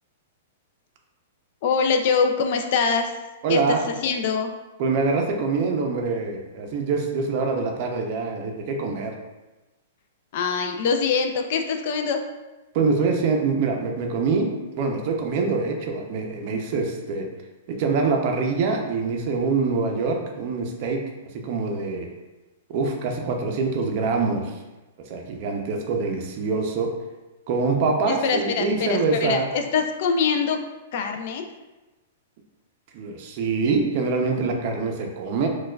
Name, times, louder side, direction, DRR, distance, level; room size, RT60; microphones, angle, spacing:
voice 1, 1.6-3.1 3.5-4.5 10.3-12.2 28.1-30.6 30.9-31.4, left 5 dB, 50° left, 5 dB, 0.3 m, -24 dB
voice 2, 3.4-3.8 4.8-9.1 12.7-17.3 17.7-21.0 21.3-22.1 22.7-24.5 25.1-26.9 27.5-29.5 32.9-35.5, right 4 dB, 45° right, 2 dB, 0.5 m, -24 dB
4.3 x 2.3 x 2.2 m, 1.1 s
hypercardioid pair, 150°, 0 cm